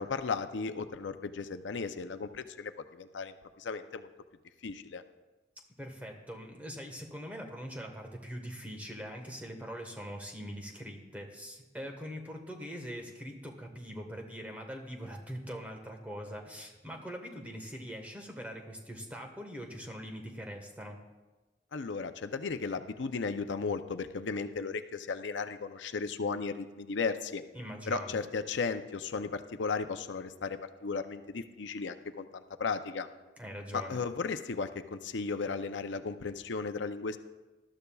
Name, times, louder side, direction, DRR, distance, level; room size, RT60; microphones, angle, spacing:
voice 1, 0.0-4.1 4.6-5.0 21.7-27.4 27.9-33.1 33.7-37.2, left 4 dB, 85° left, 8 dB, 0.6 m, -35 dB
voice 2, 5.8-21.0 27.5-28.2 33.4-34.0, equal, 10° right, 2 dB, 1.4 m, -42 dB
20.0 x 12.5 x 2.4 m, 1.2 s
head